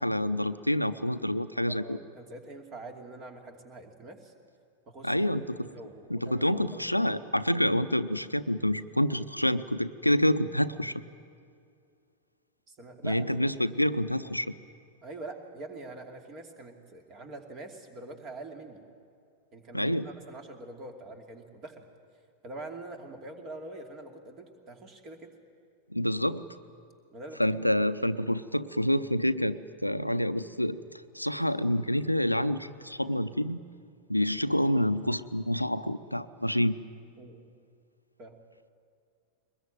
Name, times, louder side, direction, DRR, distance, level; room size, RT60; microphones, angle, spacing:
voice 1, 0.0-2.0 5.0-5.7 6.1-11.0 13.0-14.5 19.7-20.0 25.9-26.4 27.4-30.8 31.1-33.6 34.1-36.8, left 1 dB, 90° left, 12 dB, 0.6 m, -27 dB
voice 2, 1.7-4.3 4.9-5.2 5.6-7.1 12.7-13.2 15.0-18.8 19.5-21.8 22.4-25.3 27.1-27.8 37.2-37.5 38.2-38.4, right 2 dB, 35° right, 5 dB, 2.7 m, -44 dB
22.5 x 20.5 x 9.0 m, 2.4 s
figure-of-eight pair, 90°, 0 cm